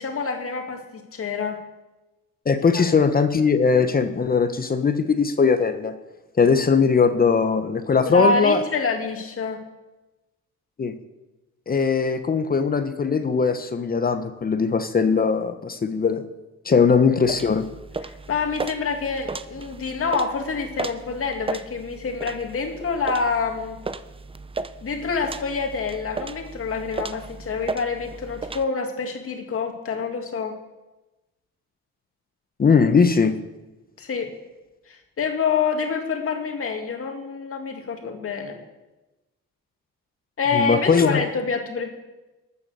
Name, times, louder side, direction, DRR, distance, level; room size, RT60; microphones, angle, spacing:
voice 1, 0.0-1.6 2.7-2.8 8.1-9.6 18.0-23.8 24.8-30.6 34.0-34.3 34.9-38.6 40.4-41.9, left 5 dB, 45° left, 3 dB, 2.2 m, -27 dB
voice 2, 2.5-5.9 6.4-8.6 10.8-10.9 11.7-16.2 16.6-17.6 32.6-33.3 40.5-41.2, left 5 dB, 30° left, 10 dB, 0.8 m, -20 dB
sound 1, 17.2-28.6, right 3 dB, 20° right, 0.6 m, -35 dB
13.0 x 7.1 x 6.8 m, 1.1 s
cardioid pair, 90°, 30 cm